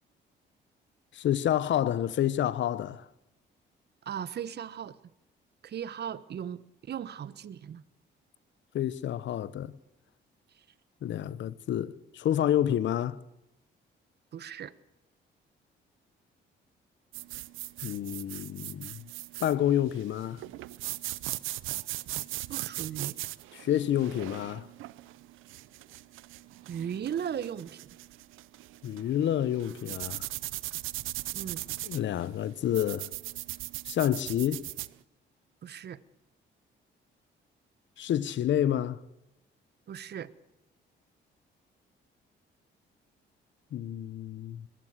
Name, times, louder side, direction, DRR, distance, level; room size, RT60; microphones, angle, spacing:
voice 1, 1.1-3.0 8.7-9.7 11.0-13.2 17.8-19.0 19.4-20.4 23.5-24.7 28.8-30.3 31.8-33.1 33.8-34.7 38.0-39.0 43.7-44.7, left 11 dB, 70° left, 1.1 m, -29 dB
voice 2, 4.0-5.0 5.6-7.8 14.3-14.7 22.5-23.2 26.7-27.8 31.3-31.6 35.6-36.0 39.9-40.3, right 9 dB, 55° right, 1.2 m, -37 dB
sound 1, 17.1-34.9, right 17 dB, 90° right, 0.7 m, -39 dB
21.5 x 15.5 x 8.1 m
cardioid pair, 90°, 20 cm